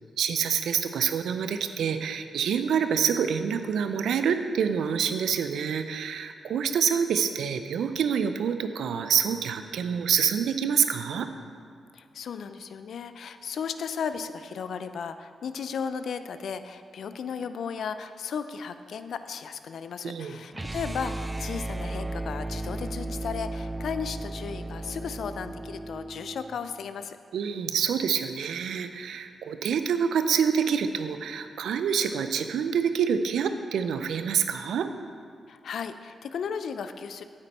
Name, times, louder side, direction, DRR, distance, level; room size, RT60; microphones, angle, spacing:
voice 1, 0.2-11.3 20.0-20.3 27.3-34.9, right 7 dB, 75° right, 9 dB, 0.5 m, -27 dB
voice 2, 11.9-27.2 35.5-37.2, left 6 dB, 70° left, 10 dB, 0.5 m, -35 dB
sound 1, 20.5-26.6, right 1 dB, 25° right, 0.4 m, -35 dB
8.9 x 8.9 x 4.2 m, 2.3 s
hypercardioid pair, 40°, 0 cm